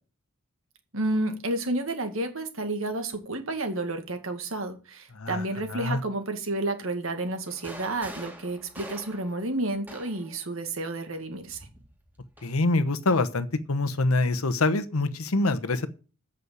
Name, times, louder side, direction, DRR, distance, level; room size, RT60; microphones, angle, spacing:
voice 1, 0.9-11.7, right 2 dB, 70° right, 2.0 m, -31 dB
sound 1, 7.5-10.4 11.5-12.6, equal, 10° right, 2.2 m, -45 dB
voice 2, 12.4-15.9, left 2 dB, 80° left, 1.0 m, -25 dB
8.2 x 6.5 x 8.0 m
head